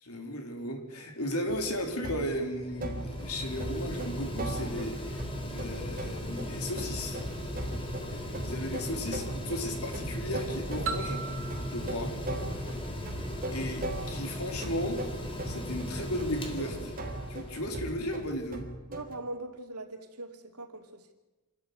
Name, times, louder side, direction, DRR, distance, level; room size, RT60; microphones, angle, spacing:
voice 1, 0.0-7.2 8.1-11.2 11.7-12.2 13.5-15.0 15.5-16.9 17.3-18.7, equal, 70° left, 4 dB, 4.3 m, -35 dB
sound 1, 1.5-2.5 2.8-19.1, right 1 dB, 40° right, 3.8 m, -39 dB
Mechanical fan, 2.0-18.3, equal, 25° left, 4.0 m, -38 dB
sound 2, 10.9-13.6, right 4 dB, 60° right, 2.2 m, -39 dB
voice 2, 18.9-21.1, right 2 dB, 85° right, 5 dB, 2.9 m, -41 dB
27.5 x 14.0 x 9.7 m, 1.1 s
head